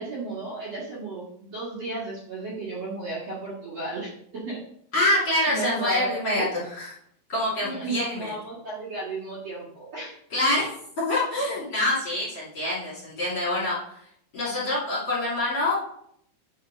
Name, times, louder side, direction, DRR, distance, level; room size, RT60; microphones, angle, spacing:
voice 1, 0.0-4.6 5.5-6.5 7.6-10.2 10.5-10.7, right 3 dB, 50° right, -7 dB, 2.2 m, -34 dB
voice 2, 4.9-6.9 7.3-8.3 10.3-10.6 11.1-13.8 14.3-15.8, left 1 dB, 35° left, -4 dB, 3.1 m, -25 dB
8.3 x 5.3 x 5.3 m, 0.69 s
omnidirectional pair, 5.5 m